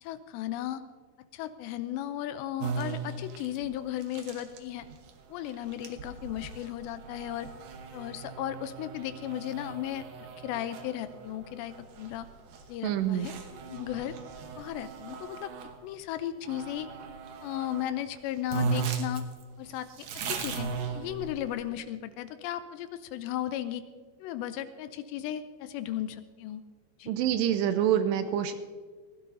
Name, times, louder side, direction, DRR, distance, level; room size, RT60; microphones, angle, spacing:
voice 1, 0.0-0.8 1.3-4.9 5.3-7.5 7.9-10.1 10.4-12.3 12.7-13.3 13.7-14.2 14.6-15.5 15.8-16.9 17.4-19.3 19.6-23.8 24.2-26.6 27.0-27.1, left 12 dB, 85° left, 11 dB, 2.7 m, -35 dB
sound 1, 2.6-15.8 16.4-17.9 18.2-18.3 18.5-21.6, right 5 dB, 65° right, 2.3 m, -38 dB
voice 2, 12.8-13.3 27.1-28.5, right 10 dB, 85° right, 9 dB, 2.7 m, -26 dB
19.5 x 15.5 x 2.7 m, 1.5 s
omnidirectional pair, 5.2 m